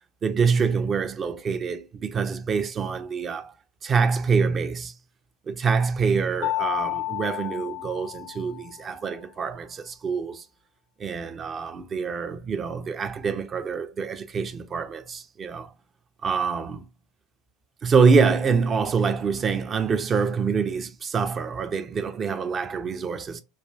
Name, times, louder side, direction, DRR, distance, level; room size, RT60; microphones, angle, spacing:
voice 1, 0.2-3.5 3.8-4.9 5.5-10.4 11.0-15.7 16.2-16.8 17.8-23.4, right 5 dB, 30° right, 0.4 m, -25 dB
Mallet percussion, 6.4-8.9, left 16 dB, 70° left, 0.4 m, -31 dB
4.2 x 2.4 x 2.3 m
figure-of-eight pair, 75°, 0 cm